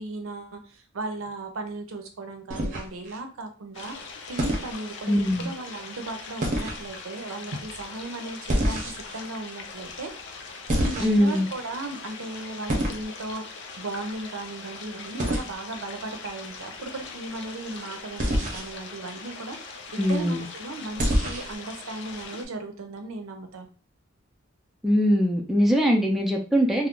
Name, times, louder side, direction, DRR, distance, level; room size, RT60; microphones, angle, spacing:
voice 1, 0.0-10.1 10.5-23.7, right 2 dB, 85° right, 6 dB, 0.6 m, -36 dB
sound 1, 2.5-3.2 4.4-4.7 6.4-6.8 8.5-9.2 10.7-11.4 12.7-13.0 15.2-15.5 18.2-18.7 21.0-21.6, equal, 40° right, 0.6 m, -26 dB
sound 2, 3.7-22.5, left 4 dB, 60° left, 0.5 m, -41 dB
voice 2, 5.1-5.5 11.0-11.5 20.0-20.5 24.8-26.9, equal, ahead, 0 dB, 0.4 m, -22 dB
2.4 x 2.0 x 3.6 m, 0.37 s
head